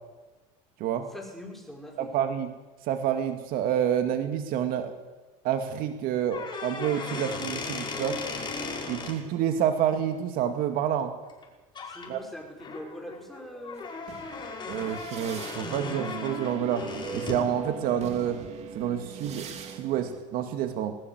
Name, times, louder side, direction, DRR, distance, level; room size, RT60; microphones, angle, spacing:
voice 1, 1.1-2.1 11.8-13.9, left 1 dB, ahead, 2 dB, 5.2 m, -43 dB
voice 2, 2.0-2.5 2.9-4.9 5.4-8.2 8.9-11.1 12.1-12.2 14.7-16.9 17.1-18.4 18.7-21.0, right 9 dB, 55° right, 7 dB, 2.2 m, -28 dB
sound 1, 6.2-9.2 11.3-11.4 11.7-12.1 12.6-17.5, left 3 dB, 25° left, 5.4 m, -37 dB
sound 2, 13.8-20.2, right 6 dB, 40° right, 3.0 m, -40 dB
20.5 x 20.0 x 8.0 m, 1.2 s
supercardioid pair, 130°, 18 cm